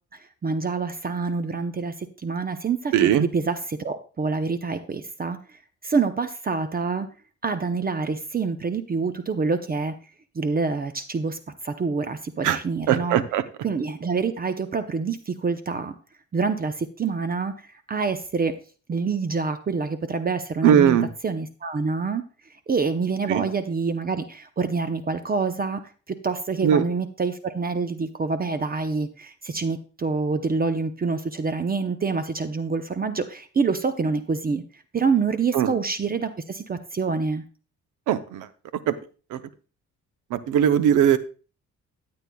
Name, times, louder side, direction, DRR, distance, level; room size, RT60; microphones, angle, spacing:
voice 1, 0.1-5.4 5.8-7.1 7.4-9.9 10.3-11.4 11.6-13.2 13.6-15.9 16.3-18.5 18.9-21.0 21.2-22.2 22.7-25.8 26.2-34.6 34.9-37.4, right 4 dB, 30° right, 9 dB, 0.7 m, -26 dB
voice 2, 2.9-3.3 12.4-12.6 12.9-13.4 20.6-21.1 23.3-23.5 26.6-26.9 35.5-35.7 38.1-38.5 38.9-39.0 39.3-39.4 40.3-41.2, right 9 dB, 90° right, 13 dB, 0.7 m, -19 dB
14.0 x 8.7 x 2.3 m, 0.36 s
cardioid pair, 90°, 30 cm